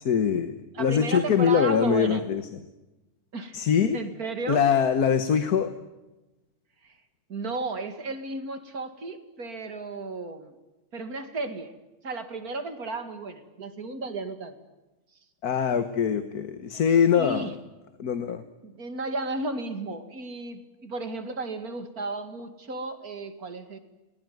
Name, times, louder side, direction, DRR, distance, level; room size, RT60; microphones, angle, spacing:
voice 1, 0.1-2.4 3.5-4.0 4.5-5.7 15.4-17.5 18.0-18.4, left 7 dB, 85° left, 10 dB, 1.8 m, -23 dB
voice 2, 0.7-2.2 3.3-3.6 3.9-4.7 6.8-7.0 7.3-10.5 10.9-11.7 12.0-14.5 16.7-16.8 17.1-17.5 18.6-23.8, right 3 dB, 75° right, 9 dB, 2.8 m, -34 dB
28.5 x 20.5 x 9.3 m, 1.1 s
omnidirectional pair, 1.6 m